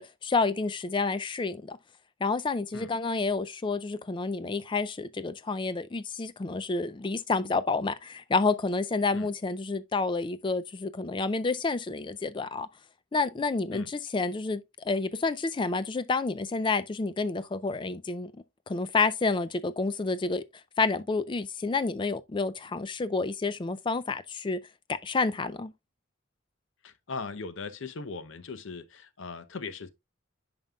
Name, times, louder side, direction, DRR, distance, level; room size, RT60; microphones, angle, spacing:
voice 1, 0.0-1.8 2.2-12.7 13.1-18.3 18.7-20.4 20.8-24.6 24.9-25.7, left 3 dB, 25° left, 0.3 m, -29 dB
voice 2, 26.8-29.9, left 4 dB, 70° left, 0.6 m, -39 dB
9.0 x 5.3 x 2.3 m
head